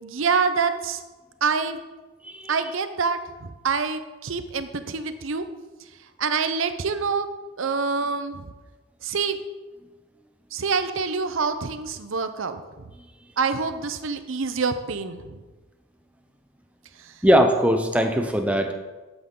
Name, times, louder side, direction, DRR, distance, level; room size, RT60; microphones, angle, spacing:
voice 1, 0.0-1.0 1.4-1.8 2.5-5.5 6.2-7.3 7.6-8.5 9.0-9.4 10.5-12.6 13.4-15.3, right 5 dB, 80° right, 10 dB, 0.7 m, -26 dB
voice 2, 2.2-2.6 17.2-18.7, equal, 5° right, 5 dB, 0.7 m, -20 dB
12.0 x 8.0 x 3.8 m, 1.2 s
head